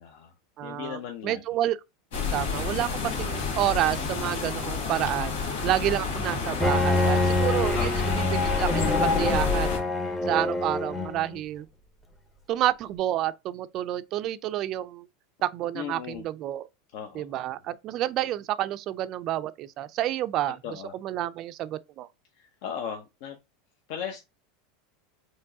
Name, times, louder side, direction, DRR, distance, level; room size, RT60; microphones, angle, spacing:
voice 1, 0.0-0.3 0.6-1.4 7.7-8.0 15.7-16.3 16.9-17.4 20.6-20.9 22.4-23.4 23.9-24.2, left 8 dB, 60° left, 0.7 m, -37 dB
voice 2, 0.6-1.8 2.3-9.7 10.3-11.7 12.5-15.1 15.4-16.7 17.1-20.6 21.0-22.1, right 13 dB, 45° right, 0.3 m, -29 dB
sound 1, 2.1-9.8, left 5 dB, 90° left, 2.1 m, -30 dB
Bowed string instrument, 6.6-11.4, left 2 dB, 10° left, 0.7 m, -26 dB
4.5 x 3.1 x 2.7 m
supercardioid pair, 130°, 0 cm